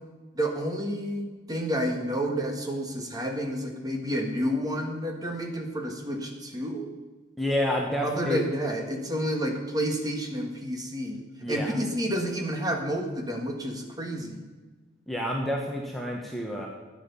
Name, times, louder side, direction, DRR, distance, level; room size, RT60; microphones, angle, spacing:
voice 1, 0.3-6.9 8.0-11.2 11.5-14.4, equal, 20° right, 2 dB, 1.8 m, -30 dB
voice 2, 7.4-8.4 11.4-11.8 15.1-16.7, equal, ahead, -2 dB, 1.3 m, -29 dB
13.5 x 9.4 x 7.0 m, 1.3 s
head